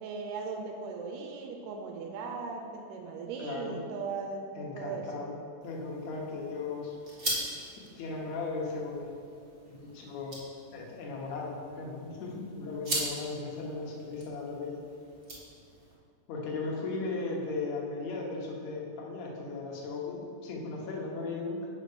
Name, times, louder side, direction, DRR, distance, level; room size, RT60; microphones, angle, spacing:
voice 1, 0.0-5.0, right 4 dB, 85° right, 2 dB, 2.2 m, -38 dB
voice 2, 3.4-3.8 4.5-5.3 5.6-7.0 7.8-9.1 9.7-10.4 10.7-14.8 16.3-21.7, left 3 dB, 65° left, -1 dB, 2.2 m, -37 dB
sound 1, 5.6-15.9, right 1 dB, 50° right, 0.6 m, -41 dB
5.5 x 5.2 x 6.6 m, 2.4 s
omnidirectional pair, 3.6 m